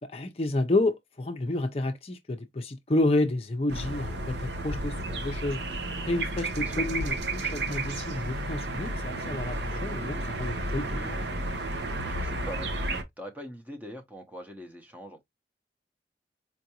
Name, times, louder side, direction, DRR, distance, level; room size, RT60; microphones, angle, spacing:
voice 1, 0.0-5.6 6.0-11.2, left 2 dB, 35° left, 0.5 m, -30 dB
sound 1, 3.7-13.0, right 1 dB, 80° right, 0.8 m, -32 dB
voice 2, 12.0-15.2, equal, 10° right, 0.7 m, -43 dB
4.5 x 2.5 x 2.8 m
head